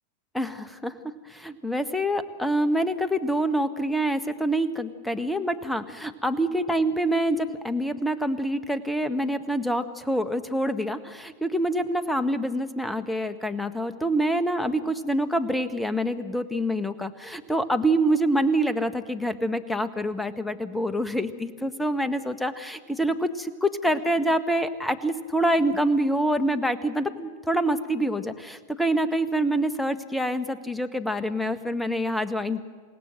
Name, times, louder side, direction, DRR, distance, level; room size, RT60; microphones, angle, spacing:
voice 1, 0.3-32.6, right 1 dB, 5° left, 11 dB, 1.5 m, -26 dB
28.0 x 17.5 x 7.8 m, 1.5 s
figure-of-eight pair, 90°, 0 cm